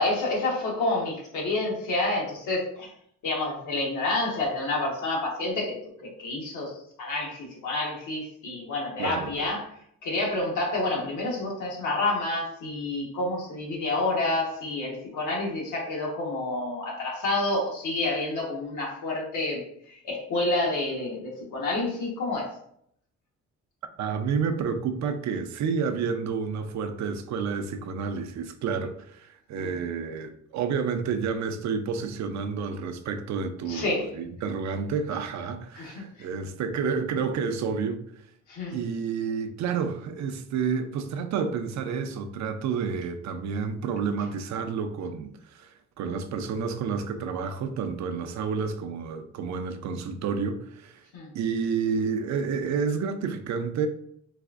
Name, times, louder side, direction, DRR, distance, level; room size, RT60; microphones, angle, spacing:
voice 1, 0.0-2.9 3.2-22.5 29.5-29.8 33.7-34.1 35.7-36.3 38.5-38.8 51.1-51.3, left 2 dB, 80° left, -2 dB, 1.2 m, -29 dB
voice 2, 9.0-9.3 24.0-38.0 38.7-51.0 51.3-53.9, right 6 dB, 65° right, 7 dB, 0.5 m, -30 dB
4.0 x 2.5 x 2.4 m, 0.69 s
cardioid pair, 90°, 30 cm